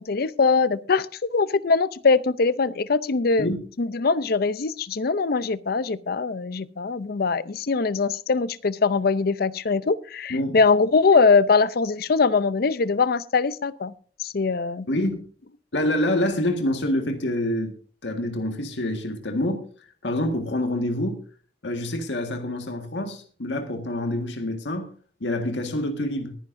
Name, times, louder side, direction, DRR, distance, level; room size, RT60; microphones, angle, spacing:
voice 1, 0.0-3.5 3.8-13.9 14.2-14.9, left 4 dB, 60° left, 0.6 m, -22 dB
voice 2, 14.9-15.2 15.7-17.7 18.0-19.6 20.0-21.2 21.6-24.9 25.2-26.3, left 1 dB, 85° left, 1.7 m, -26 dB
21.0 x 10.5 x 2.6 m
head